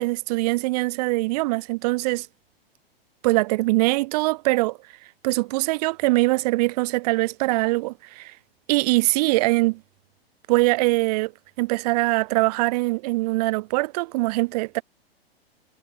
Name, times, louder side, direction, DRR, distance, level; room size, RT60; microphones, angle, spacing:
voice 1, 0.0-2.3 3.2-4.8 5.2-8.3 8.7-9.8 10.5-11.3 11.6-14.8, right 22 dB, 40° right, 0.8 m, -22 dB
figure-of-eight pair, 105°, 31 cm